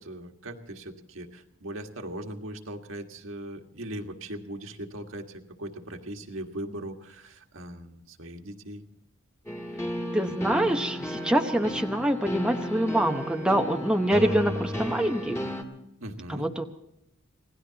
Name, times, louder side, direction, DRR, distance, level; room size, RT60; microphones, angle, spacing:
voice 1, 0.0-8.8 10.3-10.6 16.0-16.5, right 1 dB, 70° right, 3 dB, 1.7 m, -39 dB
sound 1, 9.5-15.6, equal, 15° left, 2.2 m, -33 dB
voice 2, 10.1-15.4 16.3-16.7, right 1 dB, 5° right, 3 dB, 0.9 m, -25 dB
26.5 x 18.0 x 2.9 m, 0.84 s
head